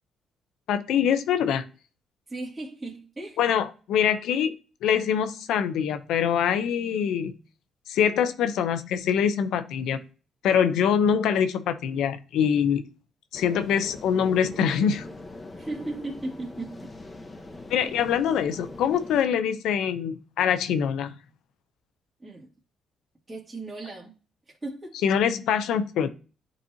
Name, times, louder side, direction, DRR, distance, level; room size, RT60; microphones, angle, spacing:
voice 1, 0.7-1.6 3.4-4.5 4.8-7.3 7.9-10.0 10.4-12.8 13.3-15.0 17.7-21.2 25.0-26.1, left 8 dB, 85° left, 0.7 m, -24 dB
voice 2, 2.3-3.4 15.6-17.0 22.2-22.5 23.3-24.2 24.5-25.0, right 2 dB, 20° right, 2.1 m, -36 dB
sound 1, 13.3-19.2, left 2 dB, 20° left, 1.4 m, -42 dB
10.5 x 4.1 x 2.8 m
cardioid pair, 90°, 0 cm